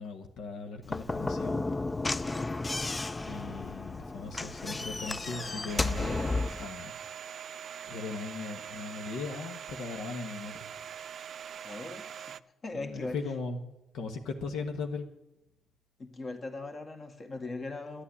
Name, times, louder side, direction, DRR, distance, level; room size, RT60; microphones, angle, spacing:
voice 1, 0.0-1.6 3.2-6.3 6.6-7.0 7.8-10.7 12.7-15.1, left 4 dB, 80° left, 5 dB, 1.3 m, -38 dB
Slam / Knock, 0.8-6.7, left 3 dB, 20° left, 0.4 m, -33 dB
Domestic sounds home sounds, 5.7-12.4, right 8 dB, 60° right, 0.5 m, -43 dB
voice 2, 11.6-12.3 12.6-13.2 16.0-18.0, left 3 dB, 40° left, 4 dB, 2.0 m, -39 dB
12.0 x 8.6 x 9.7 m, 0.90 s
cardioid pair, 90°, 0 cm